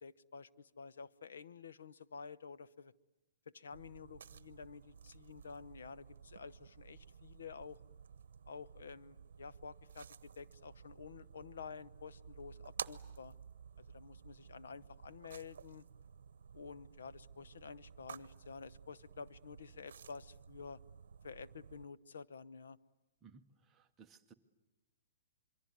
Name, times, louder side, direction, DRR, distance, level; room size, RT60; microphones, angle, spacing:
voice 1, 0.0-2.9 3.5-7.8 8.5-13.3 13.9-15.8 16.5-20.8 21.2-22.8, left 5 dB, 90° left, 15 dB, 0.9 m, -51 dB
sound 1, 3.7-21.8, right 7 dB, 70° right, 0.9 m, -53 dB
voice 2, 23.2-24.3, right 5 dB, 10° right, 4 dB, 0.9 m, -61 dB
26.5 x 23.5 x 9.6 m, 1.0 s
hypercardioid pair, 180°, 0 cm